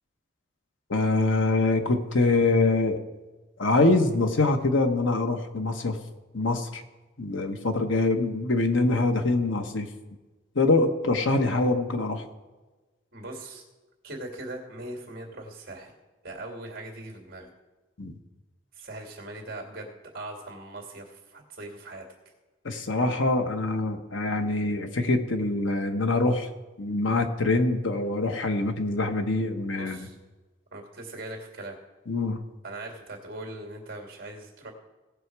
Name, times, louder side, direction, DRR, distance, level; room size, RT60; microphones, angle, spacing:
voice 1, 0.9-3.0 3.6-6.0 6.3-6.8 7.2-9.9 10.5-12.2 18.0-18.1 22.6-26.5 26.8-30.0 32.1-32.4, left 2 dB, 80° left, 6 dB, 1.1 m, -24 dB
voice 2, 13.1-13.6 14.0-15.9 16.2-17.5 18.8-22.0 29.8-30.1 30.7-31.8 32.6-34.7, right 2 dB, 50° right, 1 dB, 2.4 m, -40 dB
17.5 x 6.4 x 4.7 m, 1.2 s
head